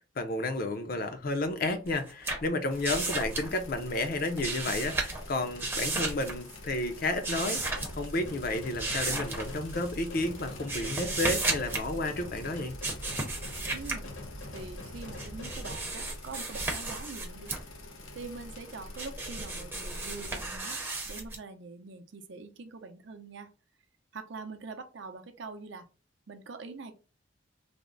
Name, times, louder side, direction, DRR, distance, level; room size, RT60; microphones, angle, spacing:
voice 1, 0.2-7.6 7.9-12.8, left 2 dB, 45° left, 0.5 m, -31 dB
sound 1, 1.9-3.9 4.1-5.3 5.6-6.6 7.2-8.1 8.8-9.9 10.4-11.9 12.8-14.0 15.0-17.6 18.2-21.4, right 2 dB, 10° right, 0.6 m, -34 dB
sound 2, 2.7-20.5, left 1 dB, 90° left, 0.8 m, -47 dB
sound 3, 7.5-15.7, left 1 dB, 65° left, 1.1 m, -43 dB
voice 2, 13.7-14.1 14.5-17.6 18.1-20.8 21.1-23.5 24.1-25.9 26.3-26.9, right 4 dB, 65° right, 0.5 m, -44 dB
3.4 x 2.0 x 3.8 m
head